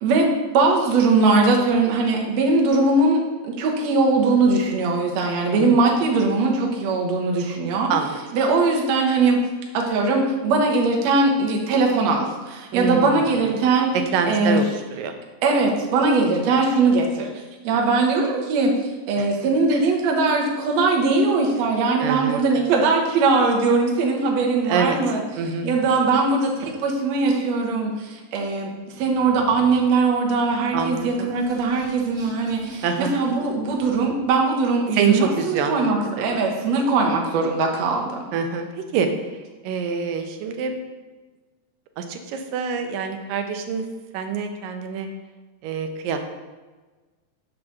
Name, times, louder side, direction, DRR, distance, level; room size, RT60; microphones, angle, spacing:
voice 1, 0.0-7.9 8.3-9.4 9.7-13.9 14.3-14.6 15.4-17.3 17.6-18.7 19.1-25.2 25.6-28.7 29.0-38.1, right 3 dB, 65° right, -1 dB, 1.9 m, -20 dB
voice 2, 7.9-8.2 12.7-13.2 13.9-15.1 19.2-19.3 22.0-22.5 24.7-25.0 25.4-25.7 26.0-26.1 30.7-31.3 32.8-33.2 34.9-35.9 36.2-36.5 38.3-39.3 39.6-40.7 42.0-43.8 44.1-45.1 45.6-46.2, right 6 dB, 80° right, 6 dB, 2.3 m, -25 dB
sound 1, 29.0-34.4, right 4 dB, 5° right, 0.7 m, -37 dB
7.7 x 3.9 x 5.8 m, 1.3 s
omnidirectional pair, 4.0 m